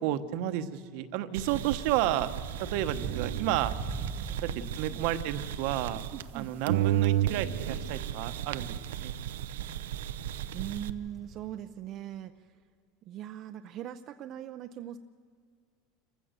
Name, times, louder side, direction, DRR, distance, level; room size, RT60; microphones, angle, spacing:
voice 1, 0.0-2.3 2.7-3.7 4.4-6.0 6.3-9.1, right 12 dB, 65° right, 11 dB, 1.1 m, -31 dB
sound 1, 1.3-6.4 6.7-10.9, right 12 dB, 90° right, 0.7 m, -33 dB
sound 2, 2.3-11.5, right 4 dB, 20° right, 0.9 m, -44 dB
voice 2, 3.1-3.5 4.2-5.0 6.1-6.5 10.5-12.6 13.0-15.0, right 11 dB, 45° right, 7 dB, 0.6 m, -41 dB
26.5 x 15.5 x 6.8 m, 2.1 s
supercardioid pair, 125°, 0 cm